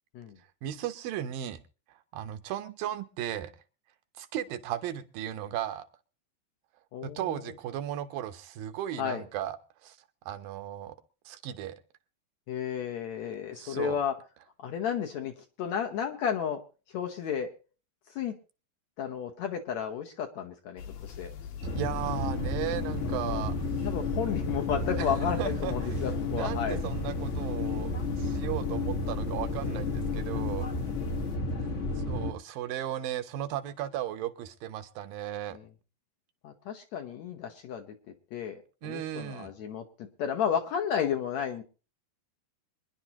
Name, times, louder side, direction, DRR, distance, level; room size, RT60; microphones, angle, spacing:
voice 1, 0.6-1.6 2.1-3.5 4.2-5.9 7.0-9.6 9.8-10.0 10.3-11.0 11.3-11.8 13.6-14.0 21.7-23.6 25.0-25.1 25.4-27.9 28.2-30.7 32.1-35.6 38.8-39.5, right 12 dB, 80° right, 9 dB, 2.6 m, -36 dB
voice 2, 6.9-7.4 9.0-9.2 12.5-14.1 14.6-16.6 16.9-17.5 18.2-18.3 19.0-21.3 23.0-23.4 23.8-26.8 29.6-29.8 31.0-31.3 35.5-35.6 36.4-38.0 38.3-41.6, left 8 dB, 65° left, 4 dB, 2.0 m, -33 dB
sound 1, 20.8-31.4, left 7 dB, 80° left, 3.2 m, -45 dB
sound 2, 21.6-32.3, left 2 dB, 50° left, 0.8 m, -32 dB
24.5 x 10.5 x 3.0 m, 0.34 s
omnidirectional pair, 4.1 m